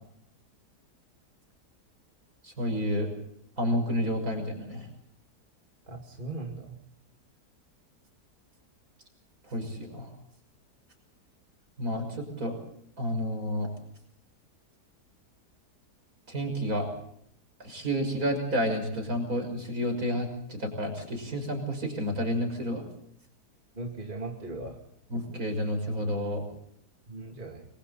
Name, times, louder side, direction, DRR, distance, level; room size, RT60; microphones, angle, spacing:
voice 1, 2.4-3.1 3.6-4.9 9.5-10.1 11.8-12.6 13.0-13.7 16.3-16.9 17.6-22.8 25.1-26.4, equal, 60° right, 4 dB, 6.6 m, -30 dB
voice 2, 5.9-6.7 23.8-24.8 27.1-27.7, right 2 dB, 30° right, 1 dB, 2.5 m, -38 dB
30.0 x 22.5 x 4.2 m, 0.69 s
omnidirectional pair, 1.7 m